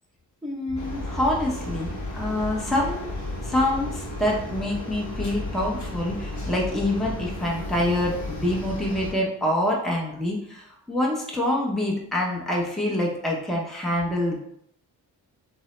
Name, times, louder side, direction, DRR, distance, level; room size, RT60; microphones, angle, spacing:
voice 1, 0.4-3.1 3.4-14.4, left 1 dB, ahead, -3 dB, 0.7 m, -26 dB
sound 1, 0.8-9.1, left 1 dB, 40° left, 0.9 m, -33 dB
2.7 x 2.0 x 3.1 m, 0.71 s
supercardioid pair, 40°, 45 cm